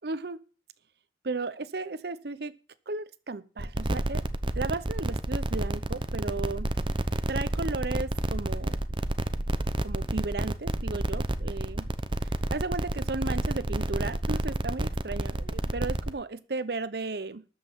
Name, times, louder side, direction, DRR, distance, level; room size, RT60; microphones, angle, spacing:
voice 1, 0.0-0.4 1.2-2.5 2.9-4.2 4.5-6.7 7.3-8.8 9.8-11.9 12.5-17.5, right 3 dB, 65° right, 14 dB, 0.8 m, -35 dB
sound 1, 3.6-16.1, right 1 dB, 30° right, 0.8 m, -30 dB
13.0 x 5.7 x 9.0 m, 0.36 s
head